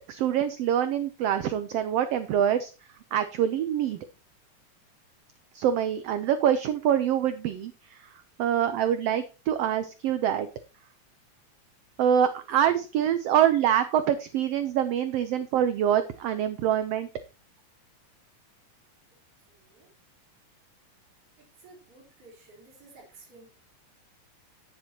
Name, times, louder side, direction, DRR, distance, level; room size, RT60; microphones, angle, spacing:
voice 1, 0.1-4.1 5.5-10.5 12.0-17.1, right 10 dB, 70° right, 11 dB, 1.5 m, -25 dB
voice 2, 19.5-19.9 21.4-23.5, right 3 dB, 50° right, -3 dB, 4.8 m, -53 dB
10.5 x 10.0 x 2.9 m, 0.31 s
omnidirectional pair, 3.4 m